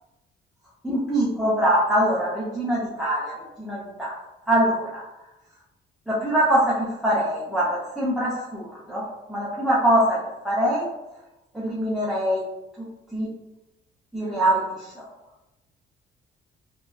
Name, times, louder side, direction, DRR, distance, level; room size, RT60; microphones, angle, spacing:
voice 1, 0.8-4.1 4.5-5.0 6.1-10.2 10.4-10.9 11.5-12.4 12.8-12.9 13.1-13.3 14.1-14.6, right 1 dB, ahead, -8 dB, 0.6 m, -23 dB
2.6 x 2.2 x 2.2 m, 0.96 s
cardioid pair, 90°, 20 cm